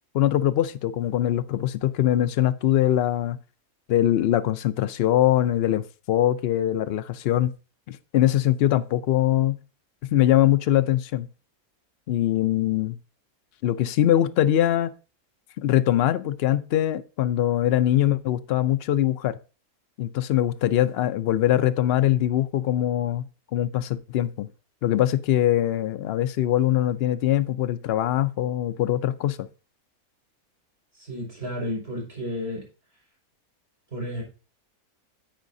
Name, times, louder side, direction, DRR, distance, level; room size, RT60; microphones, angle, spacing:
voice 1, 0.1-3.4 3.9-7.5 7.9-9.6 10.1-11.3 12.1-13.0 13.6-14.9 15.6-19.3 20.0-23.2 23.5-24.5 24.8-29.5, left 12 dB, 75° left, 0.5 m, -22 dB
voice 2, 31.0-32.6 33.9-34.2, left 1 dB, 40° right, 5.4 m, -32 dB
10.5 x 8.2 x 2.6 m
omnidirectional pair, 1.6 m